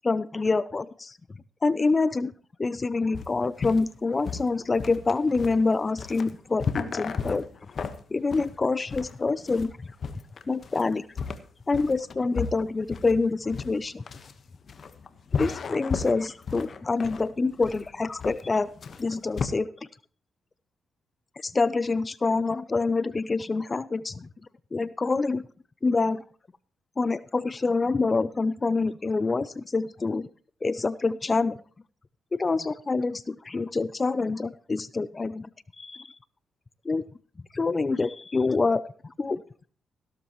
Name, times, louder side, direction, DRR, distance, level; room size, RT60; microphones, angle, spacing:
voice 1, 0.0-1.2 1.6-2.3 2.6-7.4 8.1-9.7 10.5-11.0 11.7-14.0 15.4-18.7 19.0-19.9 21.4-24.3 24.7-25.4 25.8-26.2 27.0-30.3 30.6-31.6 32.3-35.5 35.8-36.2 36.8-37.0 37.5-39.4, left 3 dB, 30° left, 17 dB, 0.5 m, -26 dB
sound 1, 3.1-19.5, left 5 dB, 55° left, 1.2 m, -34 dB
15.5 x 12.5 x 3.1 m, 0.42 s
cardioid pair, 70°, 0 cm